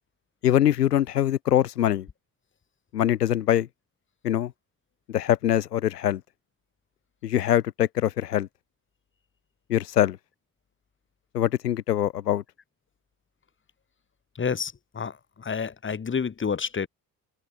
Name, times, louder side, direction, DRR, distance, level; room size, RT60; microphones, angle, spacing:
voice 1, 0.4-2.1 2.9-3.7 4.2-4.5 5.1-6.2 7.2-8.5 9.7-10.2 11.3-12.4, left 11 dB, 80° left, 1.0 m, -23 dB
voice 2, 14.3-16.9, left 6 dB, 25° left, 1.3 m, -29 dB
figure-of-eight pair, 45°, 47 cm